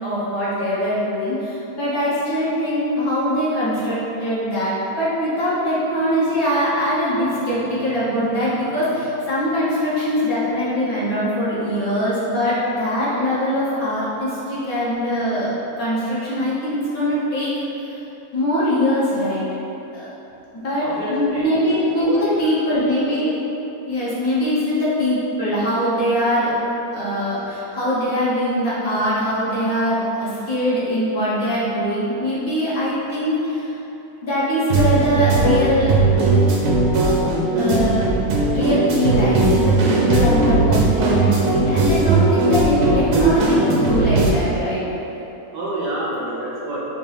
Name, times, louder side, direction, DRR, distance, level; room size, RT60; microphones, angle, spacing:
voice 1, 0.0-17.5 17.8-18.0 18.3-19.5 19.9-20.1 20.6-23.4 23.9-26.5 26.9-33.7 34.2-35.9 37.5-38.2 38.5-44.9, equal, 70° left, -10 dB, 1.6 m, -22 dB
voice 2, 20.8-21.5 22.0-22.5 45.5-46.8, right 1 dB, 60° right, -6 dB, 1.1 m, -28 dB
sound 1, 34.7-44.3, right 2 dB, 85° right, 1.2 m, -18 dB
5.2 x 2.6 x 3.3 m, 3.0 s
omnidirectional pair, 1.6 m